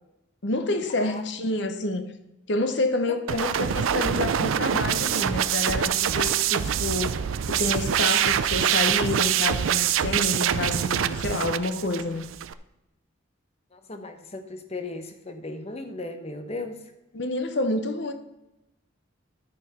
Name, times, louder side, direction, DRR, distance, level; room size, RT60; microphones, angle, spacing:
voice 1, 0.4-2.1 2.5-12.3 17.1-18.1, left 2 dB, 60° left, 0.9 m, -28 dB
voice 2, 3.1-3.4 13.7-16.8, left 2 dB, 30° left, 0.9 m, -37 dB
sound 1, 3.3-12.5, right 9 dB, 85° right, 0.4 m, -25 dB
13.0 x 4.6 x 5.5 m
head